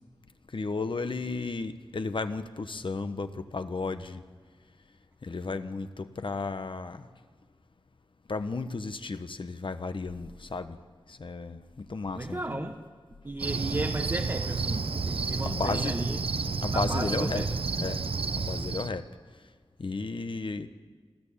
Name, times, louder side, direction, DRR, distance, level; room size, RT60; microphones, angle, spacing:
voice 1, 0.5-4.2 5.2-7.1 8.3-10.8 11.1-12.7 15.4-16.0 16.6-17.4 17.8-18.0 18.3-19.1 19.8-20.7, left 3 dB, 65° left, 10 dB, 1.2 m, -33 dB
voice 2, 12.1-12.8 13.2-16.2 16.7-17.5, right 2 dB, 30° right, 0 dB, 1.4 m, -34 dB
Cricket, 13.4-18.9, right 4 dB, 90° right, 0.9 m, -30 dB
28.5 x 13.5 x 8.7 m, 1.5 s
wide cardioid pair, 85°, 9 cm